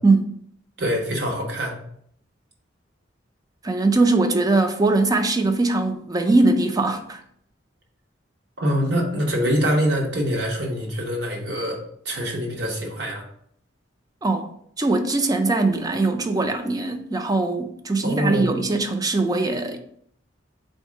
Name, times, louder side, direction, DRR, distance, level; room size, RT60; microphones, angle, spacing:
voice 1, 0.8-1.7 8.6-11.8 12.0-13.2 18.0-18.5, equal, 60° right, 1.1 m, -24 dB
voice 2, 3.6-7.2 14.2-14.5 14.8-19.8, right 2 dB, 20° right, 0.4 m, -21 dB
4.1 x 2.7 x 4.7 m
head